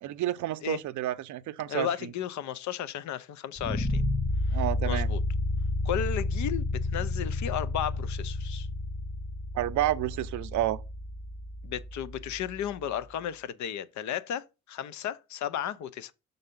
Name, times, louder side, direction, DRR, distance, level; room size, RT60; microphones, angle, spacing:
voice 1, 0.0-1.9 4.5-5.1 9.5-10.8, right 13 dB, 75° right, 0.6 m, -30 dB
voice 2, 1.7-4.0 4.5-5.2 5.8-8.7 11.6-16.1, left 9 dB, 70° left, 0.6 m, -34 dB
sound 1, 3.6-12.6, left 2 dB, 10° left, 0.7 m, -31 dB
5.6 x 4.0 x 5.2 m
cardioid pair, 90°, 30 cm